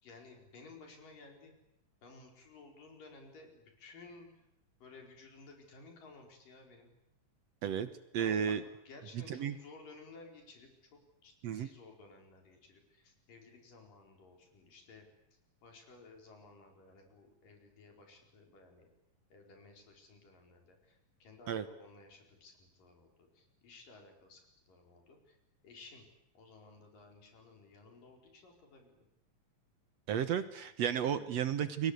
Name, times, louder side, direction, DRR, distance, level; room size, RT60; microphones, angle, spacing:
voice 1, 0.0-1.5 2.0-4.3 4.8-6.9 8.2-8.6 8.9-15.1 15.6-18.9 19.3-24.4 24.7-25.4 25.6-26.1 26.3-29.0, left 3 dB, 85° left, 3 dB, 6.5 m, -56 dB
voice 2, 8.1-8.6 9.1-9.6 11.4-11.7 21.5-21.7 30.1-31.9, right 8 dB, 60° right, 12 dB, 2.0 m, -33 dB
29.0 x 23.0 x 8.3 m, 0.84 s
omnidirectional pair, 3.8 m